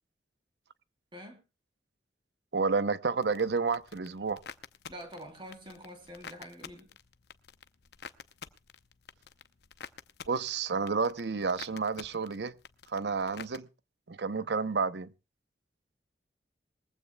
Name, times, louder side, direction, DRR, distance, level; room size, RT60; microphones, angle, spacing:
voice 1, 2.5-4.4 10.3-12.5 12.9-13.7 14.1-15.1, right 4 dB, 75° right, 0.7 m, -30 dB
sound 1, 3.2-13.6, left 6 dB, 70° left, 0.7 m, -49 dB
voice 2, 4.9-6.9, equal, 30° right, 3.1 m, -46 dB
21.0 x 15.5 x 2.2 m
head